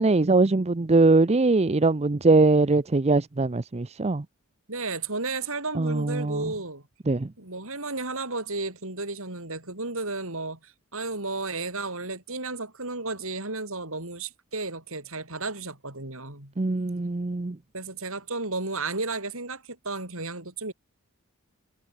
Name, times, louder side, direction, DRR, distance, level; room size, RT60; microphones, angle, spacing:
voice 1, 0.0-4.2 5.7-6.5 7.1-7.3 16.6-17.6, right 3 dB, 30° right, 0.6 m, -22 dB
voice 2, 4.7-6.8 7.4-16.5 17.7-20.7, right 3 dB, 65° right, 7.9 m, -33 dB
head